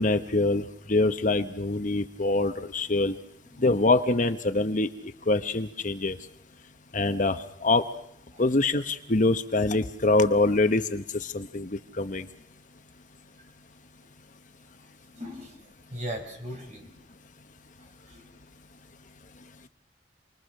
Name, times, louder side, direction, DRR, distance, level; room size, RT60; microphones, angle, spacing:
voice 1, 0.0-3.1 3.6-4.9 5.3-6.2 6.9-7.8 8.4-12.3, left 2 dB, 45° left, 9 dB, 0.9 m, -24 dB
voice 2, 3.5-3.9 8.3-8.4 15.1-15.6 15.9-17.0 18.1-18.3, equal, 40° right, 3 dB, 5.2 m, -39 dB
28.0 x 21.0 x 6.5 m, 0.76 s
head